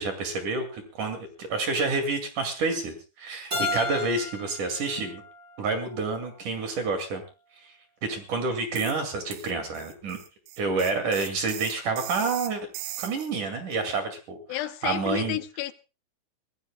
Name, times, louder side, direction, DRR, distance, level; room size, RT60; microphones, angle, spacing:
voice 1, 0.0-5.2 5.6-7.2 7.6-7.7 8.0-10.2 10.6-12.6 13.0-15.4, right 3 dB, 55° right, 5 dB, 3.6 m, -29 dB
Keyboard (musical), 3.5-6.3, left 2 dB, 20° right, 8.2 m, -34 dB
sound 1, 8.8-9.0 9.3-13.3, right 13 dB, 75° right, 2.7 m, -39 dB
voice 2, 14.5-15.7, left 13 dB, 85° left, 11 dB, 3.0 m, -31 dB
24.5 x 18.0 x 2.2 m, 0.31 s
omnidirectional pair, 4.7 m